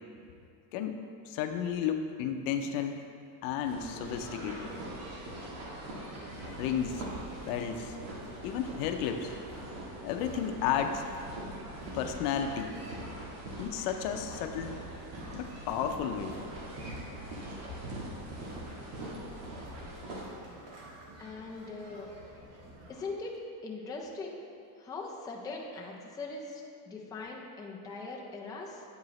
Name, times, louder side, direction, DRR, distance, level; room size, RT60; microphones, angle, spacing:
voice 1, 1.2-3.0 3.4-4.7 6.5-7.1 7.5-8.0 8.4-9.4 10.0-11.0 11.9-12.7 13.6-14.8 15.3-16.4, left 8 dB, 85° left, 6 dB, 0.7 m, -32 dB
sound 1, 3.6-20.2, right 1 dB, 65° right, 1.6 m, -42 dB
sound 2, 3.7-23.0, right 1 dB, 30° right, 1.1 m, -52 dB
voice 2, 21.2-22.1 22.9-23.4 23.6-24.5 24.8-28.8, left 3 dB, 10° left, -1 dB, 0.4 m, -41 dB
8.2 x 4.8 x 3.1 m, 2.5 s
cardioid pair, 140°, 47 cm